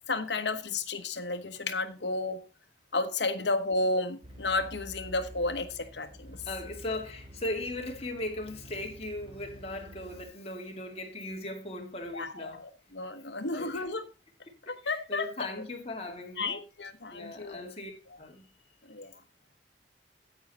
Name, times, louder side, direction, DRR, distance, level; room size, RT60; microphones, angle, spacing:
voice 1, 0.1-2.4 2.9-6.4 12.1-14.0 14.7-15.3 16.4-17.7 18.9-19.1, left 3 dB, 75° left, 1.3 m, -32 dB
sound 1, 4.2-10.2, equal, 30° right, 2.7 m, -49 dB
voice 2, 6.5-12.6 13.5-13.8 14.7-16.6 17.1-17.9 18.2-18.5, left 1 dB, 35° left, 2.3 m, -38 dB
9.5 x 8.8 x 4.2 m
head